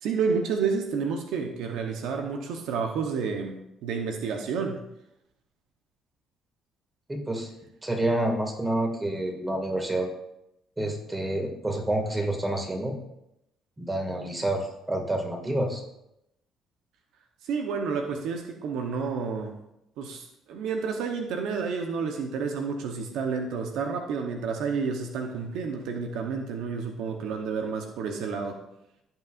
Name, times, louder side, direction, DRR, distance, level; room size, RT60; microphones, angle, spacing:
voice 1, 0.0-3.6 3.8-4.8 17.4-19.6 20.0-28.6, right 5 dB, 80° right, 3 dB, 1.0 m, -30 dB
voice 2, 7.1-7.5 7.8-10.1 10.8-13.0 13.8-15.8, right 1 dB, 15° right, 2 dB, 2.2 m, -28 dB
16.5 x 6.0 x 2.6 m, 0.83 s
cardioid pair, 85°, 0 cm